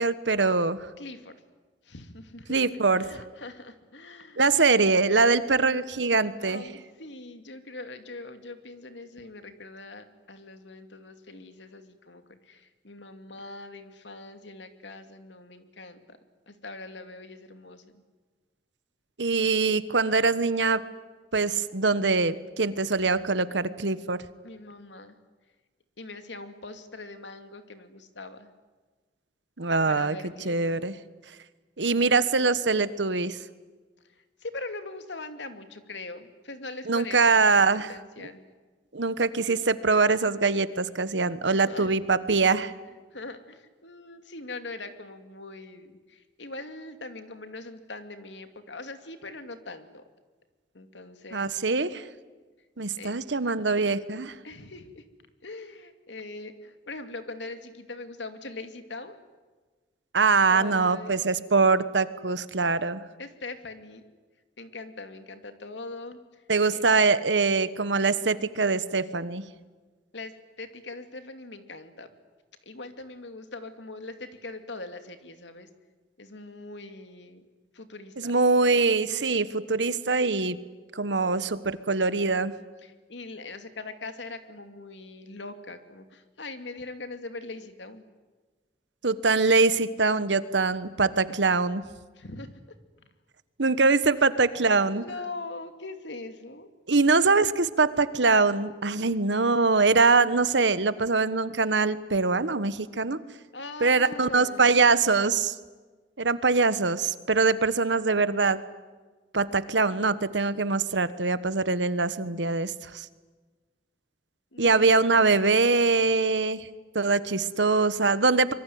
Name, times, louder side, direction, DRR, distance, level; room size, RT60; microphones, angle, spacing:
voice 1, 0.0-0.9 2.5-3.0 4.4-6.6 19.2-20.8 21.3-24.2 29.6-30.1 30.4-30.9 31.8-33.4 36.9-37.9 38.9-42.7 51.3-52.0 52.8-54.4 60.1-63.0 66.5-69.4 78.2-80.6 80.9-82.5 89.0-91.8 93.6-95.0 96.9-103.2 103.8-105.5 106.2-108.6 109.3-113.1 114.6-116.7 116.9-118.5, right 4 dB, 85° right, 14 dB, 1.3 m, -23 dB
voice 2, 1.0-1.4 1.8-4.4 5.4-5.5 6.3-16.2 16.5-18.0 24.4-25.2 26.0-28.5 29.8-30.8 34.0-38.4 41.5-41.9 43.1-50.0 50.7-51.5 53.0-53.1 54.4-55.1 55.4-59.2 60.4-61.3 63.2-64.0 64.6-66.4 66.7-66.8 70.1-72.2 72.6-75.7 76.2-77.4 77.7-78.4 82.8-88.0 92.1-92.6 94.6-96.7 103.5-104.9 114.5-114.9, left 3 dB, 85° left, 8 dB, 2.6 m, -42 dB
25.5 x 23.0 x 9.5 m, 1.3 s
head